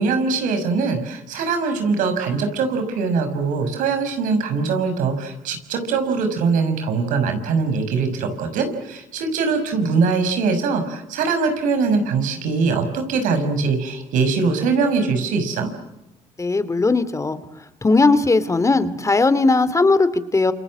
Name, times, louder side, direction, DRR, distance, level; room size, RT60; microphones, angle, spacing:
voice 1, 0.0-15.7, right 4 dB, 85° right, 7 dB, 5.9 m, -22 dB
voice 2, 16.4-17.4 17.8-20.5, left 3 dB, 25° left, 13 dB, 2.5 m, -18 dB
28.0 x 27.5 x 7.5 m, 0.89 s
cardioid pair, 80°, 13 cm